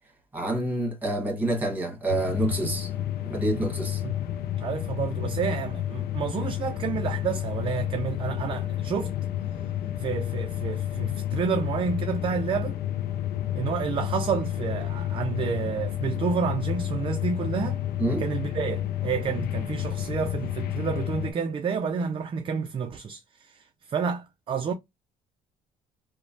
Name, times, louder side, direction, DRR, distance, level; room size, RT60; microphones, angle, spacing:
voice 1, 0.3-2.9 3.2-4.0 18.0-18.2, right 2 dB, 10° right, 1.3 m, -27 dB
sound 1, 2.1-21.3, left 12 dB, 65° left, 0.4 m, -30 dB
voice 2, 4.6-9.1 10.0-12.8 13.5-17.8 18.2-23.2 23.5-23.6 23.9-24.7, right 6 dB, 30° right, 0.4 m, -29 dB
3.0 x 2.1 x 2.6 m
cardioid pair, 110°, 17 cm